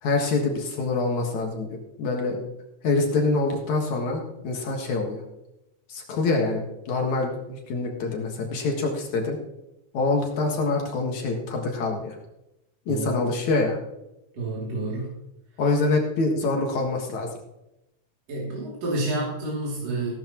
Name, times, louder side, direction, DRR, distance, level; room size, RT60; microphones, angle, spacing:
voice 1, 0.0-2.4 2.8-5.2 5.9-9.4 9.9-12.2 12.9-13.8 15.6-17.3, left 3 dB, 75° left, 1 dB, 3.0 m, -25 dB
voice 2, 12.9-13.3 14.3-15.2 18.3-20.1, right 2 dB, 60° right, -6 dB, 4.0 m, -29 dB
16.5 x 13.0 x 3.0 m, 0.90 s
omnidirectional pair, 3.3 m